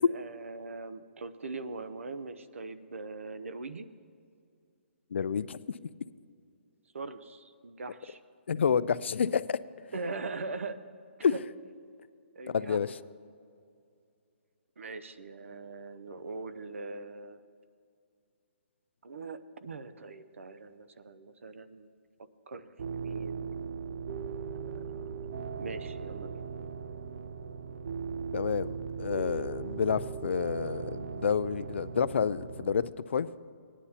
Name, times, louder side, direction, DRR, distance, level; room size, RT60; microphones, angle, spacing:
voice 1, 0.1-3.9 6.9-8.2 9.9-10.8 11.3-11.4 12.3-12.8 14.8-17.4 19.0-21.9 22.5-23.4 24.7-25.2 25.6-26.5, right 3 dB, 90° right, 12 dB, 0.7 m, -41 dB
voice 2, 5.1-5.6 8.5-9.6 11.2-11.3 12.5-13.0 28.3-32.8 33.1-33.3, left 6 dB, 65° left, 16 dB, 0.3 m, -29 dB
sound 1, 22.8-32.9, right 6 dB, 55° right, 0.4 m, -38 dB
18.5 x 9.8 x 2.8 m, 2.4 s
hypercardioid pair, 175°, 7 cm